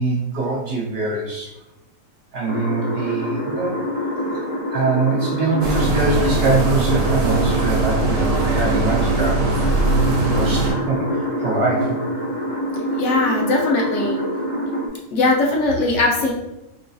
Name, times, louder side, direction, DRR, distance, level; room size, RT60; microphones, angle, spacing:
voice 1, 0.0-1.5 2.3-3.8 4.3-4.4 4.7-9.7 10.1-12.0, right 2 dB, 60° right, -3 dB, 0.7 m, -23 dB
sound 1, 2.5-14.9, equal, 45° left, 0.4 m, -26 dB
sound 2, 5.6-10.7, right 3 dB, 75° right, 0.3 m, -21 dB
voice 2, 12.9-14.2 15.1-16.3, left 2 dB, 70° left, -2 dB, 0.9 m, -19 dB
3.7 x 2.6 x 2.3 m, 0.95 s
omnidirectional pair, 1.4 m